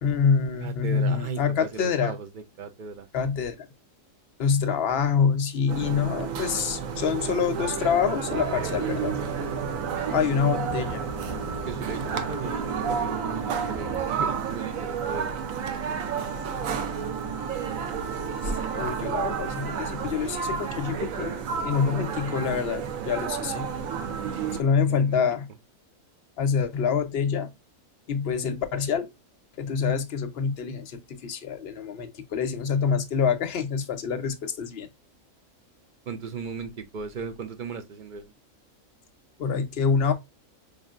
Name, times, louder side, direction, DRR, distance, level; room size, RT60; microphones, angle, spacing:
voice 1, 0.0-2.1 3.1-3.7 4.4-9.1 10.1-11.1 18.4-21.4 21.6-23.7 24.6-25.5 26.4-27.5 28.1-29.1 29.6-34.9 39.4-40.1, left 6 dB, 55° left, 0.8 m, -26 dB
voice 2, 0.6-1.4 1.7-3.1 11.7-15.3 15.9-16.3 24.5-25.2 36.1-38.3, right 5 dB, 55° right, 0.5 m, -37 dB
sound 1, 5.7-24.6, right 6 dB, 85° right, 1.1 m, -31 dB
sound 2, 8.3-14.0, right 2 dB, 5° left, 0.8 m, -37 dB
5.0 x 2.7 x 2.3 m
omnidirectional pair, 1.4 m